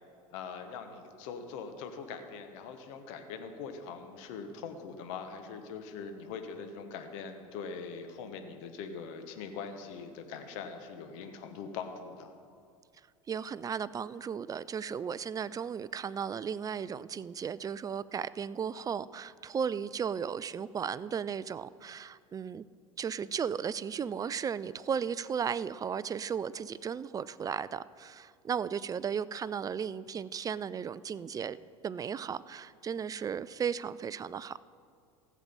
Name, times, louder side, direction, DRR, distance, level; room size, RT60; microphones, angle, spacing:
voice 1, 0.3-12.3, left 5 dB, 60° left, 7 dB, 1.3 m, -42 dB
voice 2, 13.3-22.7 23.0-31.6 31.8-34.6, right 7 dB, 20° right, 18 dB, 0.3 m, -35 dB
15.0 x 7.4 x 5.5 m, 2.2 s
hypercardioid pair, 80°, 18 cm